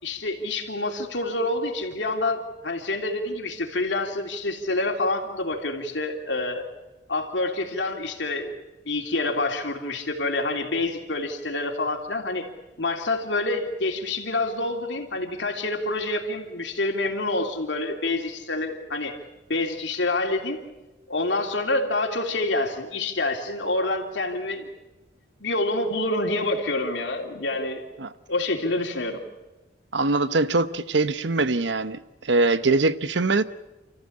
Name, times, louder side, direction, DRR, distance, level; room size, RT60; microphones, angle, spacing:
voice 1, 0.0-6.7 7.1-8.5 8.8-12.5 12.8-19.2 19.5-20.6 21.1-24.7 25.4-27.8 28.3-29.2, left 2 dB, 75° left, 3.2 m, -27 dB
voice 2, 29.9-33.4, right 3 dB, 70° right, 0.9 m, -22 dB
29.0 x 14.5 x 8.7 m
head